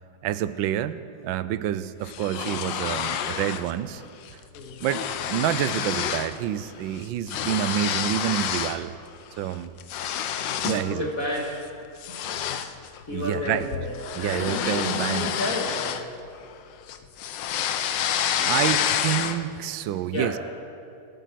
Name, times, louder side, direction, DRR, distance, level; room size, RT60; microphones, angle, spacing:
voice 1, 0.2-4.0 4.8-5.0 5.3-8.9 9.4-9.7 10.6-11.1 13.1-13.7 14.1-15.4 18.4-20.4, right 12 dB, 80° right, 14 dB, 1.3 m, -28 dB
sound 1, 2.1-3.7 4.0-4.3 4.6-6.4 6.7-8.8 9.3-10.9 11.3-11.6 12.0-16.6 16.9-19.6, left 9 dB, 70° left, 1.4 m, -29 dB
voice 2, 10.6-11.5 12.1-12.2 13.1-16.1 18.4-18.8 20.1-20.4, left 1 dB, 45° left, -2 dB, 2.3 m, -31 dB
26.0 x 9.3 x 6.0 m, 2.4 s
omnidirectional pair, 2.1 m